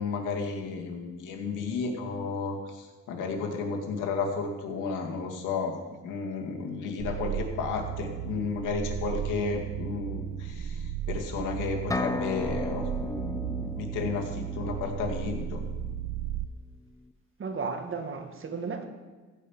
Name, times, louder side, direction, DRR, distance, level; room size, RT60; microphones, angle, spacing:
voice 1, 0.0-5.8 6.0-10.8 11.1-15.6, left 4 dB, 90° left, 1 dB, 2.1 m, -32 dB
sound 1, 7.0-16.5, right 10 dB, 65° right, 0.6 m, -35 dB
sound 2, 11.9-15.7, left 2 dB, 10° left, 0.5 m, -35 dB
voice 2, 17.4-18.9, right 4 dB, 45° right, 5 dB, 1.8 m, -34 dB
15.5 x 5.4 x 7.1 m, 1.4 s
cardioid pair, 90°, 30 cm